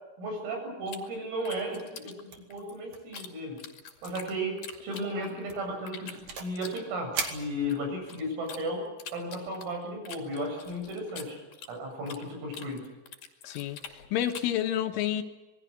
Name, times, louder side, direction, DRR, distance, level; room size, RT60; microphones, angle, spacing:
voice 1, 0.2-3.6 4.0-8.8 9.1-11.4 11.7-12.8, equal, 75° right, 2 dB, 10.5 m, -34 dB
sound 1, 0.9-3.3 3.6-5.5 5.9-8.6 9.0-12.3 12.5-14.6, left 7 dB, 50° left, 3.4 m, -45 dB
sound 2, 2.3-2.6 2.9-3.2 3.4-3.5 4.1-4.3 4.7-5.0 5.5-6.6 7.1-8.1, right 5 dB, 45° right, 2.6 m, -38 dB
voice 2, 13.5-15.2, left 11 dB, 75° left, 6 dB, 3.5 m, -30 dB
27.0 x 21.0 x 6.5 m, 1.1 s
omnidirectional pair, 6.0 m